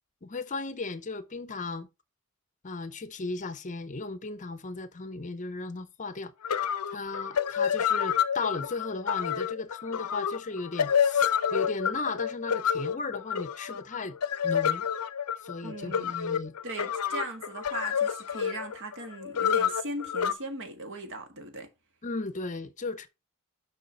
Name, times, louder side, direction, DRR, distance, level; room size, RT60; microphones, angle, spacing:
voice 1, 0.2-1.9 2.6-6.6 6.9-14.2 14.4-14.9 15.4-16.5 22.0-23.1, left 3 dB, 35° left, 0.6 m, -36 dB
sound 1, 6.1-6.2 6.4-20.3, left 8 dB, 85° left, 0.6 m, -29 dB
voice 2, 15.6-16.1 16.6-21.7, right 2 dB, 60° right, 1.5 m, -39 dB
6.7 x 5.6 x 4.4 m
head